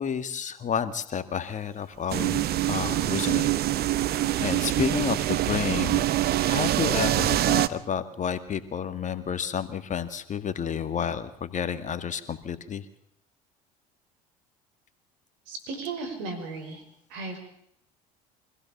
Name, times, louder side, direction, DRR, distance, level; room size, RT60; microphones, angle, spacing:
voice 1, 0.0-3.5 4.4-12.9, left 7 dB, 40° left, 11 dB, 1.9 m, -30 dB
sound 1, 2.1-7.7, right 13 dB, 55° right, 0.9 m, -25 dB
voice 2, 15.5-16.8 17.1-17.4, right 3 dB, 70° right, 6 dB, 5.6 m, -35 dB
24.5 x 16.0 x 7.3 m, 0.71 s
hypercardioid pair, 70°, 19 cm